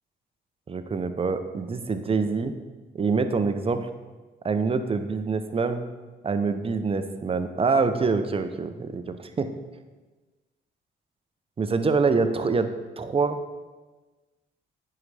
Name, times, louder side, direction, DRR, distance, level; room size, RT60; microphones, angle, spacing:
voice 1, 0.7-2.5 2.9-3.9 4.4-5.9 6.2-9.5 11.6-12.7 13.0-13.4, right 4 dB, 30° right, 9 dB, 0.6 m, -25 dB
9.8 x 4.9 x 3.3 m, 1.3 s
cardioid pair, 90°, 20 cm